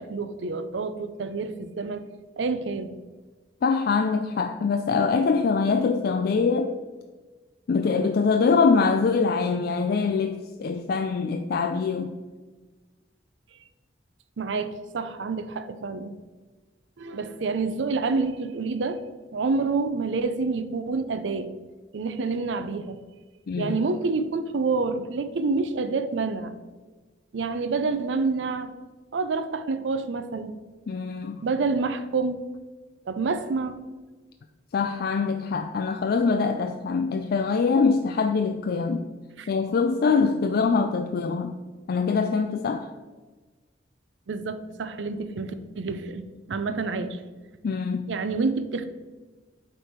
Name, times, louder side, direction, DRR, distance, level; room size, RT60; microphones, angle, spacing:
voice 1, 0.0-2.0 2.4-2.9 14.4-16.1 17.0-19.0 19.3-21.5 21.9-23.0 23.6-26.6 27.3-28.7 29.1-30.5 31.4-32.4 33.1-33.8 39.4-39.5 44.3-47.2 48.1-48.9, right 4 dB, 85° right, 10 dB, 0.5 m, -28 dB
voice 2, 3.6-6.7 7.7-12.2 23.5-23.7 30.9-31.4 34.7-39.1 39.5-41.6 41.9-42.9 47.6-48.1, left 5 dB, 55° left, 5 dB, 0.3 m, -24 dB
8.4 x 3.4 x 4.5 m, 1.3 s
head